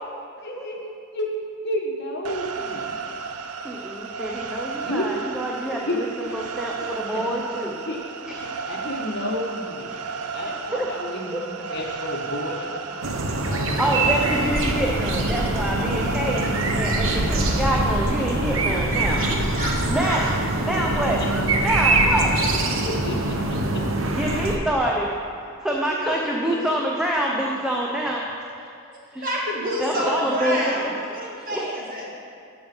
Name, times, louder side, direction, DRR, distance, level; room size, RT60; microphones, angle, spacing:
voice 1, 0.4-1.3 1.6-2.9 4.8-5.2 5.7-6.0 6.2-6.3 6.8-7.2 7.6-8.0 8.7-9.9 10.3-13.9 22.8-23.4 26.0-26.1 26.5-26.6 27.9-28.3 28.6-28.7, left 1 dB, 50° left, 0 dB, 1.3 m, -31 dB
sound 1, 2.3-17.7, right 5 dB, 85° right, 0.6 m, -34 dB
voice 2, 3.6-7.7 10.7-10.9 11.3-11.4 13.8-16.4 16.8-19.2 19.9-20.3 20.7-21.2 21.6-22.4 24.2-25.1 25.6-28.2 29.1-29.3 29.8-30.6 30.8-30.9 31.5-31.6, right 1 dB, 5° right, -2 dB, 0.6 m, -26 dB
sound 2, 13.0-24.6, right 2 dB, 65° right, 0.9 m, -23 dB
voice 3, 19.5-20.2 29.2-32.0, equal, 40° right, -4 dB, 2.1 m, -28 dB
14.0 x 5.5 x 5.4 m, 2.4 s
head